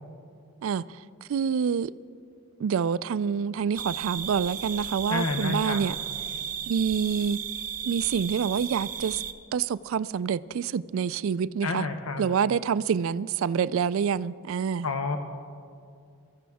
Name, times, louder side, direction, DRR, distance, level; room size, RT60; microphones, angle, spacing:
voice 1, 0.6-1.9 2.6-5.9 6.7-7.4 7.8-9.2 9.5-11.9 12.2-14.9, right 7 dB, 65° right, 0.3 m, -27 dB
sound 1, 3.7-9.3, right 8 dB, 35° right, 0.7 m, -35 dB
voice 2, 5.1-5.8 11.6-12.2 14.8-15.2, left 3 dB, 80° left, 0.8 m, -29 dB
23.5 x 14.0 x 3.5 m
head